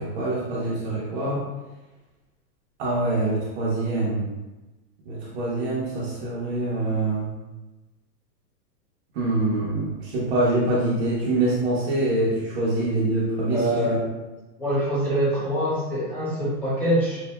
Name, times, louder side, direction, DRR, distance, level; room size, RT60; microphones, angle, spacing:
voice 1, 0.0-1.4 2.8-4.3 5.1-7.3 9.1-14.0, right 2 dB, 40° right, -6 dB, 0.9 m, -25 dB
voice 2, 13.5-14.1 14.6-17.2, equal, 5° left, -12 dB, 1.3 m, -24 dB
6.9 x 2.5 x 2.2 m, 1.1 s
supercardioid pair, 160°, 50 cm